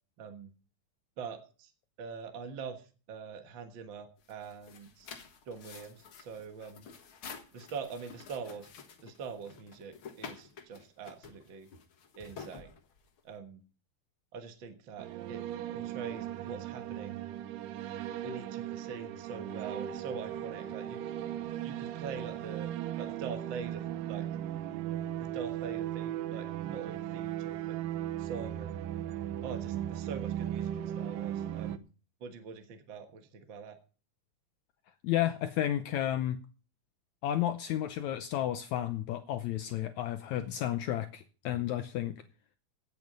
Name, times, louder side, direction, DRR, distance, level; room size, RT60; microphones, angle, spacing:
voice 1, 0.2-0.5 1.2-1.7 2.0-5.1 5.5-6.9 7.5-8.7 9.0-11.7 12.2-12.7 13.2-13.6 14.3-15.4 15.7-17.2 18.2-21.0 21.6-22.7 23.0-24.3 25.1-27.8 28.2-28.8 29.4-31.8 32.2-33.8, right 5 dB, 55° right, 6 dB, 1.3 m, -44 dB
sound 1, 4.2-13.3, left 6 dB, 50° left, 1.6 m, -50 dB
sound 2, 15.0-31.8, right 11 dB, 75° right, 2.2 m, -37 dB
voice 2, 35.0-36.4 37.2-42.2, left 12 dB, 90° left, 9 dB, 1.6 m, -32 dB
17.0 x 8.1 x 5.3 m, 0.37 s
omnidirectional pair, 4.3 m